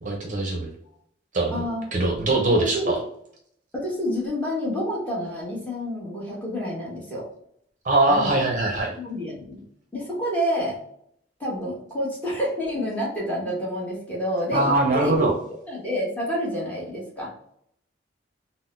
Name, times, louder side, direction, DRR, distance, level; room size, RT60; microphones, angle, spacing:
voice 1, 0.0-0.7 1.3-1.6 1.9-3.0 7.8-8.9 14.5-15.3, right 2 dB, 45° right, 1 dB, 0.6 m, -22 dB
voice 2, 1.5-1.9 2.5-2.9 3.7-7.3 8.1-8.3 9.0-9.6 9.9-10.8 11.4-17.3, equal, 10° left, -6 dB, 1.1 m, -28 dB
3.8 x 2.0 x 2.4 m, 0.69 s
head